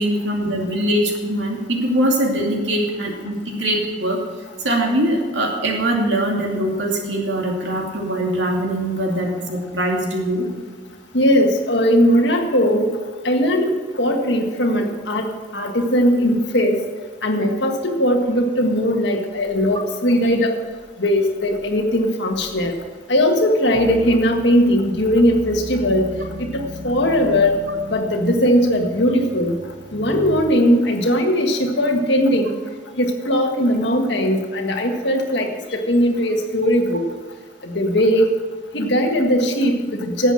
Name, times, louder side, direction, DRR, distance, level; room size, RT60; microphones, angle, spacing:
voice 1, 0.0-4.2 4.6-10.5, right 1 dB, 85° right, 0 dB, 2.6 m, -22 dB
voice 2, 11.1-13.0 13.2-16.9 17.2-20.6 21.0-22.8 23.1-26.1 26.4-27.6 27.9-29.5 29.9-32.6 33.0-37.1 37.6-38.4 38.7-40.3, equal, 75° left, 3 dB, 1.7 m, -19 dB
sound 1, 23.7-30.4, equal, 40° right, 1.6 m, -36 dB
11.5 x 8.1 x 7.6 m, 1.4 s
head